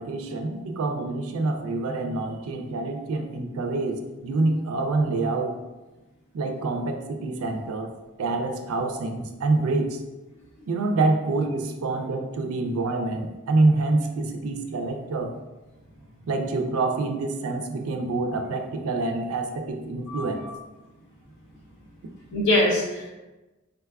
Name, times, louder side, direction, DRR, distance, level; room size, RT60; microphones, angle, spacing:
voice 1, 0.0-5.5 6.3-7.9 8.2-10.0 10.7-15.4 16.3-20.5, right 2 dB, 85° right, 5 dB, 0.4 m, -26 dB
voice 2, 20.1-20.5 22.3-23.1, left 1 dB, 55° left, -4 dB, 0.7 m, -23 dB
3.8 x 2.3 x 2.2 m, 1.1 s
head